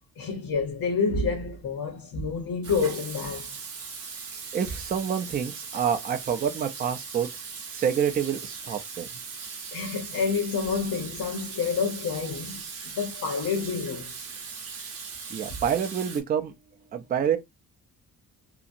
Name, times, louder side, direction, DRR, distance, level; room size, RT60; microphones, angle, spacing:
voice 1, 0.2-3.5 9.7-12.6 12.9-14.1, left 5 dB, 85° left, 0.9 m, -28 dB
Water tap faucet / Sink (filling or washing), 2.6-16.2, right 5 dB, 45° right, 0.8 m, -39 dB
voice 2, 4.5-7.3 7.7-9.1 15.3-16.5 16.9-17.4, right 8 dB, 25° right, 0.4 m, -27 dB
2.9 x 2.5 x 2.5 m
cardioid pair, 165°, 34 cm